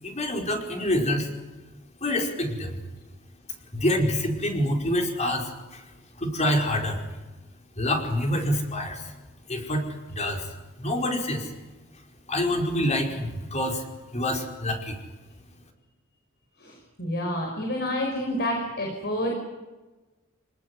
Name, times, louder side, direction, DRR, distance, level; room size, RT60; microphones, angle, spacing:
voice 1, 0.0-1.3 2.0-2.8 3.7-5.8 6.2-7.0 7.8-9.1 9.5-10.5 10.8-11.5 12.3-13.8 14.1-15.0, left 1 dB, 35° left, 2 dB, 5.0 m, -26 dB
voice 2, 16.6-19.3, left 1 dB, 50° left, 1 dB, 5.7 m, -29 dB
28.0 x 19.5 x 9.8 m, 1.2 s
head